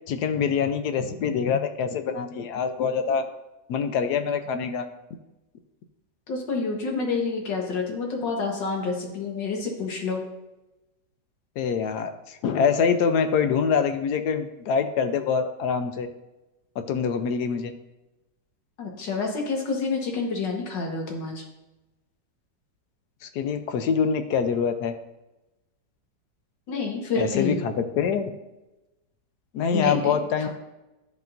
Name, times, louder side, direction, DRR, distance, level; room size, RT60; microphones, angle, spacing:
voice 1, 0.1-3.3 3.7-4.9 11.6-16.1 16.8-17.7 23.2-24.9 27.2-28.3 29.5-30.5, left 6 dB, 70° left, 8 dB, 1.1 m, -25 dB
voice 2, 6.3-10.2 18.8-21.4 26.7-27.6 29.7-30.2, left 4 dB, 85° left, 0 dB, 2.0 m, -28 dB
12.0 x 5.1 x 2.6 m, 0.99 s
omnidirectional pair, 1.9 m